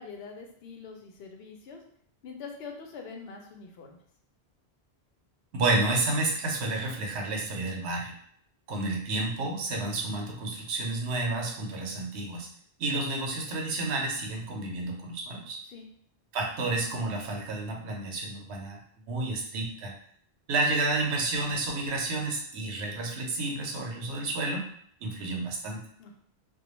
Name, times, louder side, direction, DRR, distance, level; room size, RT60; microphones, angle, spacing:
voice 1, 0.0-1.8 2.2-4.0 15.6-15.9 26.0-26.1, left 5 dB, 75° left, 2 dB, 0.8 m, -44 dB
voice 2, 5.5-8.1 8.7-12.5 12.8-15.6 16.3-18.8 19.1-19.9 20.5-24.7 25.0-25.8, right 2 dB, 85° right, 1 dB, 0.9 m, -30 dB
2.2 x 2.1 x 3.0 m, 0.64 s
omnidirectional pair, 1.1 m